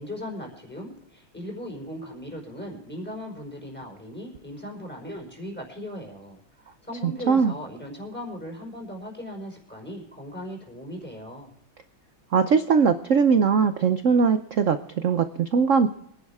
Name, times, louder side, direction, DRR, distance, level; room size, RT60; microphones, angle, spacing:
voice 1, 0.0-6.4 6.6-11.5, equal, 5° left, 1 dB, 4.9 m, -38 dB
voice 2, 12.3-14.8 15.0-15.9, right 5 dB, 90° right, 10 dB, 0.6 m, -20 dB
25.0 x 10.5 x 3.5 m, 0.71 s
omnidirectional pair, 2.3 m